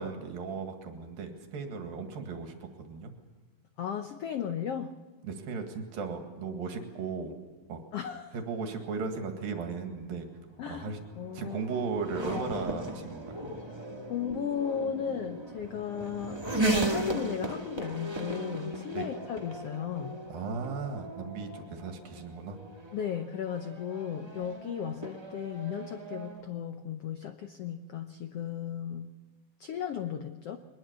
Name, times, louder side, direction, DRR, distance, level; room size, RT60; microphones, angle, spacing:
voice 1, 0.0-3.1 5.2-7.4 7.7-7.8 8.3-10.3 10.7-11.0 11.3-13.4 19.0-19.1 20.3-22.6, right 4 dB, 80° right, 4 dB, 3.7 m, -36 dB
voice 2, 3.8-4.9 7.9-8.3 10.6-11.6 13.7-20.2 22.9-29.1 29.6-30.6, left 8 dB, 80° left, 7 dB, 1.3 m, -35 dB
Race car auto racing / Accelerating revving vroom, 10.2-26.4, right 2 dB, 15° right, 0.9 m, -37 dB
22.5 x 20.5 x 7.0 m, 1.3 s
omnidirectional pair, 4.1 m